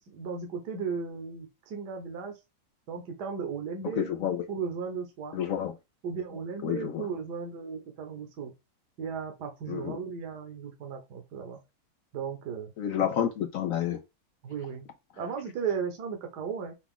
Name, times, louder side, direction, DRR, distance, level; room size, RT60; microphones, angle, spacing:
voice 1, 0.1-2.3 2.9-4.1 4.5-5.4 6.0-8.5 9.0-11.6 12.1-12.7 14.4-14.9 15.2-16.7, right 6 dB, 65° right, 1.5 m, -35 dB
voice 2, 4.0-4.4 5.3-5.7 6.6-7.1 9.7-10.0 12.8-14.0, left 9 dB, 75° left, 0.7 m, -29 dB
5.9 x 2.3 x 3.6 m
omnidirectional pair, 2.0 m